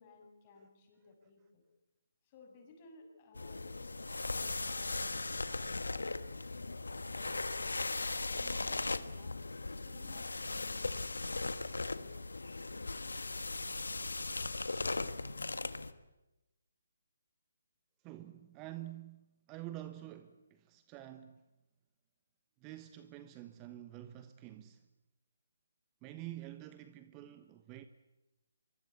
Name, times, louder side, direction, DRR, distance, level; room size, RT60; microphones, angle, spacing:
voice 1, 0.0-1.6 2.2-12.9, left 3 dB, 30° left, 7.4 m, -59 dB
sound 1, 3.4-15.9, left 3 dB, 85° left, 1.6 m, -38 dB
voice 2, 18.0-21.4 22.6-24.9 26.0-27.9, right 14 dB, 20° right, 1.1 m, -48 dB
25.0 x 24.5 x 8.6 m
figure-of-eight pair, 150°, 0 cm